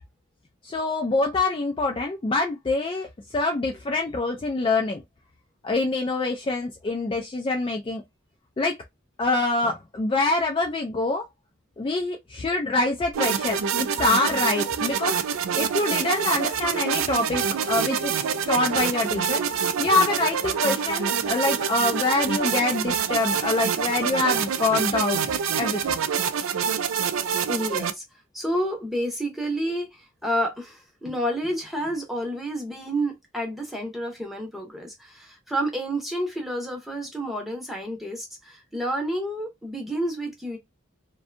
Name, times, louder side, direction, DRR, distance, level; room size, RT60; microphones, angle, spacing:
voice 1, 0.6-3.1 3.3-5.0 5.6-8.0 8.6-8.7 9.2-11.3 11.8-15.2 15.6-18.1 18.5-19.4 19.8-25.2 25.6-25.8, left 2 dB, 25° left, 0.3 m, -25 dB
sound 1, 13.1-27.9, right 7 dB, 70° right, 0.3 m, -26 dB
voice 2, 27.5-28.0 28.3-40.6, right 1 dB, ahead, 0.7 m, -29 dB
2.6 x 2.2 x 2.4 m
head